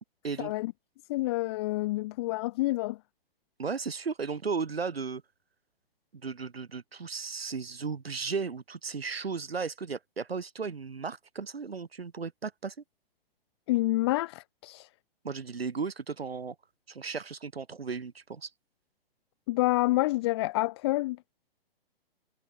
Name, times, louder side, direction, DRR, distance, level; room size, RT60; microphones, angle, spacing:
voice 1, 0.4-0.7 1.1-3.0 13.7-14.9 19.5-21.2, left 19 dB, 30° left, 0.4 m, -28 dB
voice 2, 3.6-5.2 6.1-12.7 15.2-16.5 16.9-18.5, right 5 dB, 80° right, 3.3 m, -35 dB
figure-of-eight pair, 125°, 30 cm